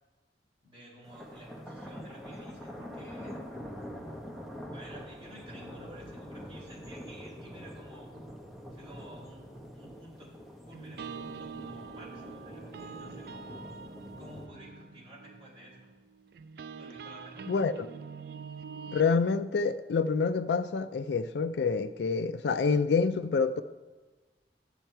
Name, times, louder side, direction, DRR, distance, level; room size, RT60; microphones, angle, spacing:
voice 1, 0.6-3.8 4.6-8.1 8.7-10.4 10.6-13.8 14.2-15.9 16.8-17.5, equal, 30° right, 3.5 m, -51 dB
sound 1, 1.0-14.5, equal, ahead, 0.8 m, -45 dB
sound 2, 10.7-19.1, right 6 dB, 60° right, 0.3 m, -45 dB
voice 2, 18.9-23.6, left 5 dB, 75° left, 0.4 m, -27 dB
11.5 x 8.7 x 4.5 m
head